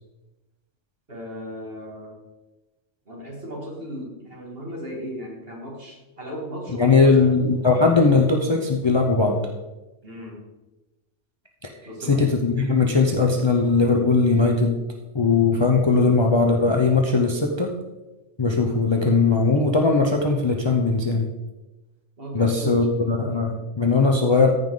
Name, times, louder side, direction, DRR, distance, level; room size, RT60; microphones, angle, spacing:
voice 1, 1.1-2.1 3.1-7.4 10.0-10.4 11.8-12.2 22.2-23.5, equal, 50° right, -3 dB, 2.7 m, -36 dB
voice 2, 6.8-9.4 12.1-14.8 15.1-17.7 18.4-21.3 22.3-24.5, left 4 dB, 25° left, 2 dB, 0.7 m, -19 dB
14.0 x 5.6 x 3.9 m, 1.1 s
omnidirectional pair, 1.3 m